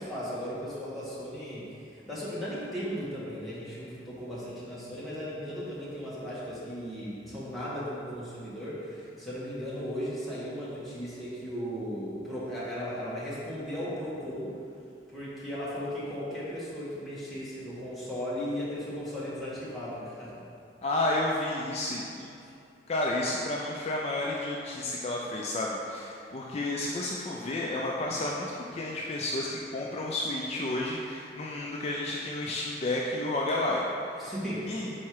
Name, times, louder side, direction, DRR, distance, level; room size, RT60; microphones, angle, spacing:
voice 1, 0.0-14.5 15.1-20.3 22.4-22.5 34.2-34.8, equal, ahead, -10 dB, 1.3 m, -36 dB
voice 2, 20.8-22.3 22.9-34.2 34.7-34.9, left 2 dB, 35° left, -3 dB, 0.4 m, -31 dB
4.7 x 4.3 x 4.6 m, 2.6 s
head